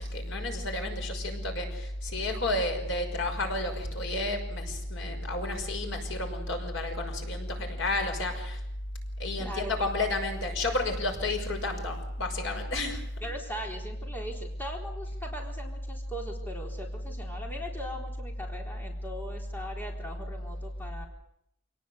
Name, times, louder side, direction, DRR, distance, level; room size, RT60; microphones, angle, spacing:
voice 1, 0.1-8.6 9.2-13.0, left 2 dB, 75° left, 4 dB, 5.8 m, -31 dB
voice 2, 9.4-9.9 13.2-21.1, equal, 10° left, 0 dB, 4.1 m, -40 dB
27.0 x 19.0 x 8.1 m, 0.75 s
head